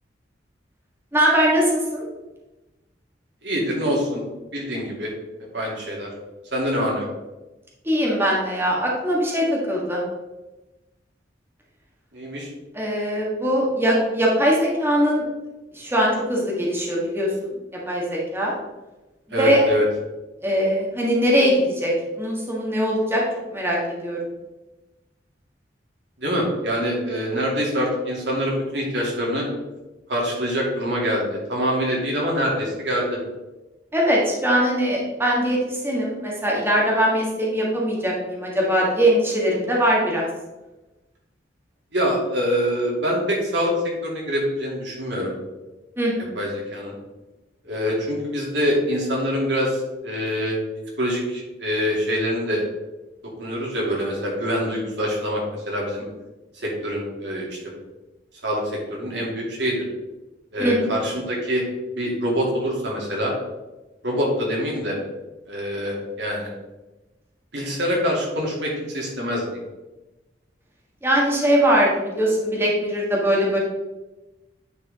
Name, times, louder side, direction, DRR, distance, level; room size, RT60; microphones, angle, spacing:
voice 1, 1.1-2.0 7.8-10.0 12.7-15.2 15.7-17.6 17.9-18.5 19.3-19.7 20.4-23.2 23.5-24.2 33.9-40.3 46.0-46.4 60.6-60.9 71.0-73.6, equal, 15° right, -4 dB, 1.7 m, -21 dB
voice 2, 3.4-4.2 4.5-5.1 5.5-6.1 6.5-7.1 12.1-12.5 19.3-19.8 26.2-29.4 30.1-33.2 41.9-43.7 44.0-45.3 46.4-46.9 47.6-50.6 51.0-52.6 53.4-55.4 55.7-56.0 56.6-57.4 58.4-58.6 58.9-59.8 60.5-61.6 61.9-63.3 64.0-65.0 65.5-66.5 67.5-69.6, equal, 70° right, -3 dB, 2.7 m, -25 dB
9.6 x 4.9 x 3.6 m, 1.1 s
head